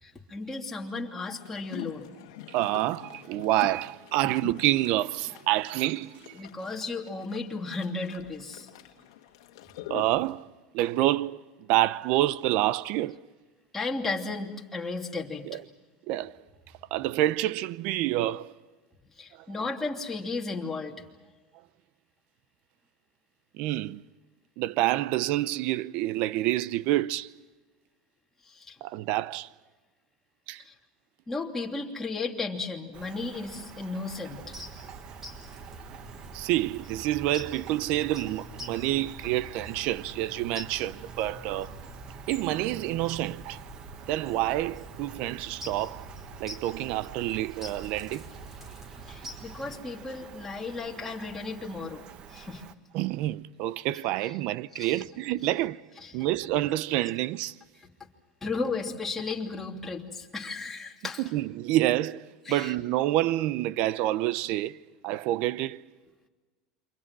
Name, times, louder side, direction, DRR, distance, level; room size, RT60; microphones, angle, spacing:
voice 1, 0.0-2.1 6.4-8.7 13.7-15.5 19.2-21.0 28.5-28.8 30.6-30.7 31.3-34.4 49.1-52.6 54.7-55.0 56.0-56.1 58.4-61.2 62.5-62.7, left 3 dB, 10° left, 3.0 m, -34 dB
sound 1, 1.4-10.3, left 14 dB, 85° left, 1.4 m, -45 dB
voice 2, 2.5-6.4 9.9-10.5 10.7-11.4 11.7-13.2 15.5-15.6 16.1-16.4 16.9-18.5 23.5-24.0 24.6-27.3 28.8-29.5 30.5-30.6 36.3-41.8 42.3-43.6 44.1-46.1 46.4-48.3 52.9-55.8 56.1-57.6 61.3-65.8, right 15 dB, 60° right, 0.7 m, -28 dB
Rain, 32.9-52.8, right 8 dB, 45° right, 1.3 m, -48 dB
sound 2, 34.3-49.8, equal, 15° right, 5.2 m, -45 dB
28.5 x 24.5 x 6.1 m
supercardioid pair, 130°, 2 cm